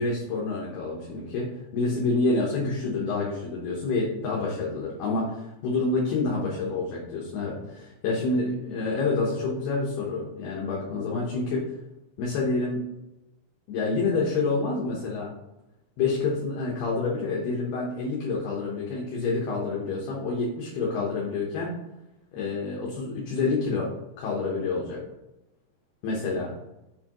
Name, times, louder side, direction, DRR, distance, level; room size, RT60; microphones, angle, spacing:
voice 1, 0.0-1.5 1.7-11.6 12.2-12.8 13.7-15.3 16.0-21.7 22.3-23.9 24.2-25.0 26.0-26.5, left 3 dB, 70° left, -4 dB, 2.9 m, -28 dB
7.7 x 6.8 x 3.0 m, 0.93 s
omnidirectional pair, 5.2 m